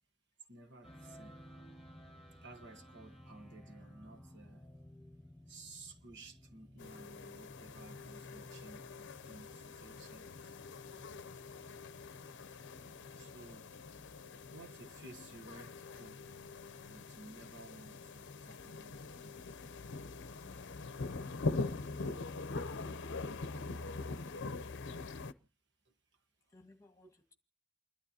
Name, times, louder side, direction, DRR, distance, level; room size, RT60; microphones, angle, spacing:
voice 1, 0.5-1.4 2.4-4.7 5.5-10.5 13.2-13.7 14.5-16.2 16.9-19.4, right 2 dB, 60° right, 1.3 m, -55 dB
sound 1, 0.8-20.8, equal, ahead, 4.2 m, -58 dB
sound 2, 6.8-25.3, left 3 dB, 60° left, 0.7 m, -43 dB
voice 2, 20.4-21.6 26.5-27.3, left 2 dB, 15° left, 1.9 m, -63 dB
29.5 x 12.0 x 2.8 m
head